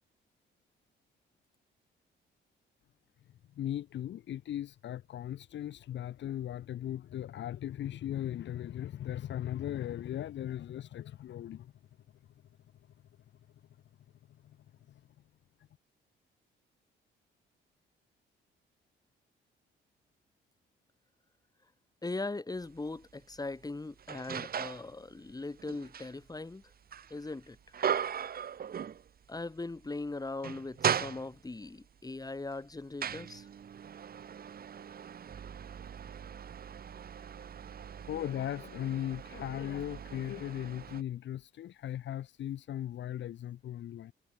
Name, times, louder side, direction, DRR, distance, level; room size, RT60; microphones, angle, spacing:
voice 1, 3.6-11.7 38.1-44.1, left 11 dB, 65° left, 1.2 m, -38 dB
voice 2, 22.0-26.6 27.1-27.6 29.3-33.5, left 2 dB, 20° left, 5.7 m, -40 dB
sound 1, 22.6-22.8 23.3-24.9 25.3-29.4 29.7-29.9 30.3-31.7 32.4-41.0, right 8 dB, 50° right, 1.6 m, -38 dB
cardioid pair, 90°, 20 cm